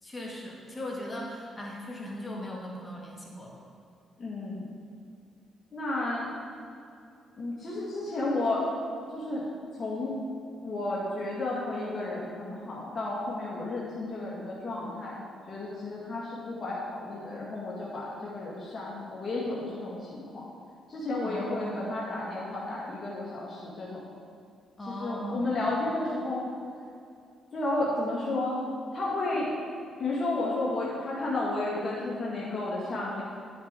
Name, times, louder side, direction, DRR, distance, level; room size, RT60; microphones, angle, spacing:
voice 1, 0.0-3.6 21.2-21.9 24.8-25.5, equal, 20° left, -2 dB, 1.8 m, -38 dB
voice 2, 4.2-4.6 5.7-6.3 7.4-8.6 9.1-9.4 9.8-10.2 10.6-15.2 15.5-20.4 20.9-24.0 24.9-26.4 27.5-28.6 28.9-29.5 30.0-33.2, left 2 dB, 40° left, -7 dB, 2.0 m, -32 dB
10.0 x 7.3 x 3.7 m, 2.4 s
cardioid pair, 90°, 0 cm